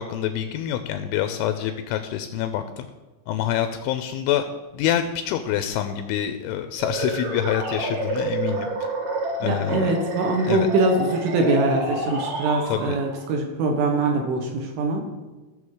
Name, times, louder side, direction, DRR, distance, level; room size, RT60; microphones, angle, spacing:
voice 1, 0.0-2.9 3.3-4.4 4.7-8.7 9.4-10.0 10.5-10.7 12.7-13.0, left 10 dB, 85° left, 8 dB, 2.8 m, -26 dB
sound 1, 6.8-13.3, right 2 dB, 45° right, 2.6 m, -29 dB
voice 2, 9.4-15.1, right 3 dB, 75° right, 2 dB, 3.5 m, -23 dB
15.5 x 6.8 x 4.8 m, 1.2 s
omnidirectional pair, 5.9 m